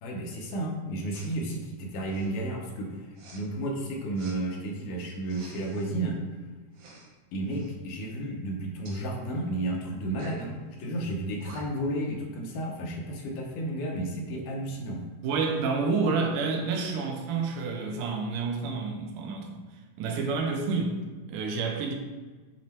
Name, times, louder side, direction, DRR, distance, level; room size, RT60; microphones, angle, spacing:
voice 1, 0.0-3.0 3.3-6.2 7.3-15.0, right 1 dB, 80° left, 0 dB, 2.5 m, -32 dB
Respiratory sounds, 1.1-1.3 2.0-2.4 3.1-3.4 4.1-4.4 5.2-5.9 6.7-7.1 7.4-7.7 8.8-9.0 10.1-10.4 11.1-11.2 11.4-11.9, right 3 dB, 70° right, 2.2 m, -50 dB
voice 2, 15.2-19.6 20.0-21.0 21.3-21.9, right 4 dB, 90° right, 1 dB, 2.4 m, -29 dB
7.6 x 3.1 x 4.4 m, 1.4 s
omnidirectional pair, 3.6 m